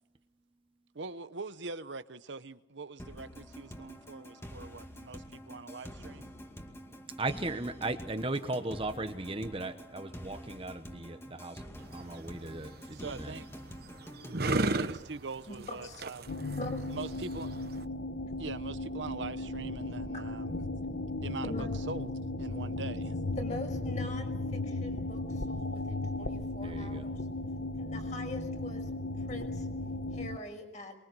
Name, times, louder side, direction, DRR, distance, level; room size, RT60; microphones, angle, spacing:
voice 1, 0.9-6.3 12.9-13.5 14.7-16.3 16.9-17.6 18.4-20.6 21.2-23.2, right 3 dB, 75° right, 0.9 m, -43 dB
sound 1, 3.0-14.4, equal, 15° left, 2.2 m, -47 dB
voice 2, 7.2-11.6 11.9-13.3 26.6-27.1, right 2 dB, 30° right, 1.1 m, -37 dB
sound 2, 11.8-17.8, right 2 dB, 55° right, 1.1 m, -36 dB
sound 3, 16.3-30.4, left 2 dB, 80° left, 1.1 m, -36 dB
voice 3, 23.4-24.3 24.6-27.2 27.8-28.9 29.2-29.7 30.1-30.9, left 1 dB, 40° left, 5.7 m, -43 dB
25.0 x 22.5 x 6.2 m
head